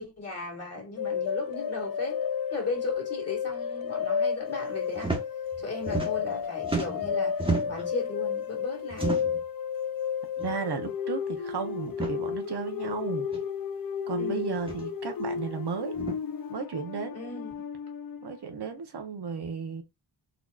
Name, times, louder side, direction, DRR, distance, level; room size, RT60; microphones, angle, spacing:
voice 1, 0.0-2.2 2.5-5.2 5.6-9.1 14.2-14.5 17.1-17.7, left 3 dB, 35° left, 1.9 m, -37 dB
sound 1, 1.0-18.4, left 7 dB, 50° left, 0.5 m, -32 dB
sound 2, 4.9-5.2 5.5-6.4 6.6-7.9 8.9-9.4 10.4-10.5 10.9-11.0 11.9-12.1 13.3-13.4 14.6-14.9 15.9-16.2, right 3 dB, 10° right, 1.1 m, -32 dB
voice 2, 10.4-13.3 14.1-15.9 16.5-17.1 18.2-19.8, right 6 dB, 60° right, 0.9 m, -34 dB
4.2 x 2.9 x 2.3 m
wide cardioid pair, 105°, 45 cm